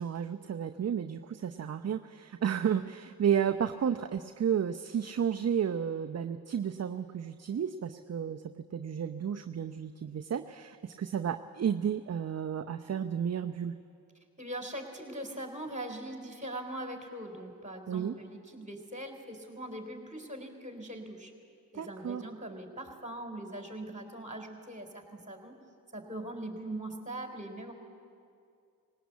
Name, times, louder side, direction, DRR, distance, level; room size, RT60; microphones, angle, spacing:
voice 1, 0.0-13.7 17.9-18.2 21.7-22.2, right 8 dB, 35° right, 8 dB, 0.8 m, -32 dB
voice 2, 14.4-21.3 21.7-25.6 25.9-27.7, right 1 dB, 15° right, 4 dB, 4.1 m, -41 dB
19.5 x 18.5 x 8.4 m, 2.4 s
supercardioid pair, 50°, 45 cm